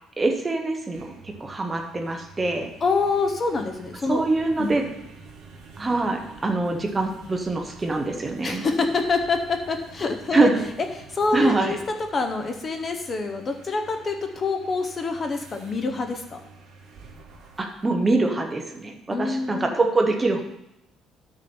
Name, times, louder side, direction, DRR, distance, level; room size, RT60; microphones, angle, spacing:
voice 1, 0.2-2.7 4.1-4.9 5.8-8.6 10.3-10.6 11.3-11.8 17.6-20.4, right 2 dB, 15° right, 3 dB, 0.9 m, -24 dB
sound 1, 0.8-17.9, right 4 dB, 50° right, 1.9 m, -48 dB
voice 2, 2.8-4.2 4.6-4.8 8.4-10.5 11.1-11.8 12.1-16.4 19.1-19.7, left 4 dB, 25° left, 5 dB, 0.7 m, -26 dB
12.0 x 6.2 x 4.4 m, 0.84 s
cardioid pair, 175°, 0 cm